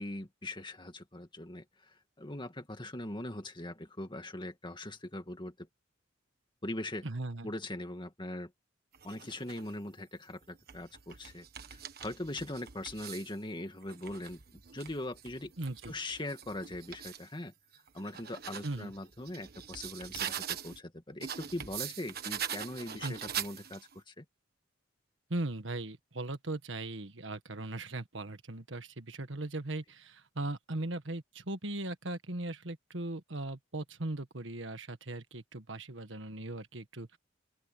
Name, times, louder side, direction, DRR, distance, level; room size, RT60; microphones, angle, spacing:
voice 1, 0.0-1.6 2.2-5.5 6.6-7.1 7.4-8.5 9.0-11.5 11.7-15.5 15.9-17.5 17.9-24.2, left 1 dB, 25° left, 2.2 m, -41 dB
voice 2, 7.0-7.5 15.6-15.9 18.6-18.9 23.0-23.2 25.3-37.2, right 2 dB, 70° right, 1.7 m, -38 dB
sound 1, 8.9-9.7 10.4-13.4 13.8-17.3 17.7-20.8 21.2-23.9, right 9 dB, 50° right, 1.5 m, -43 dB
open air
head